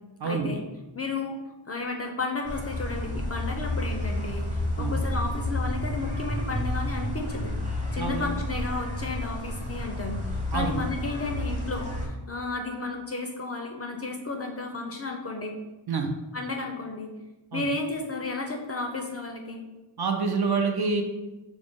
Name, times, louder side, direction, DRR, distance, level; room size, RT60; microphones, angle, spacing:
voice 1, 0.2-0.6 0.9-1.4 1.7-7.5 7.9-15.6 16.3-17.1 17.5-19.6, left 3 dB, 30° left, 2 dB, 0.4 m, -33 dB
sound 1, 2.4-12.1, left 1 dB, 15° right, 0.8 m, -31 dB
voice 2, 8.0-8.3 10.5-10.7 15.9-16.1 17.5-17.6 20.0-21.0, right 5 dB, 55° right, 4 dB, 0.5 m, -27 dB
4.8 x 2.1 x 3.5 m, 1.1 s
wide cardioid pair, 85°, 47 cm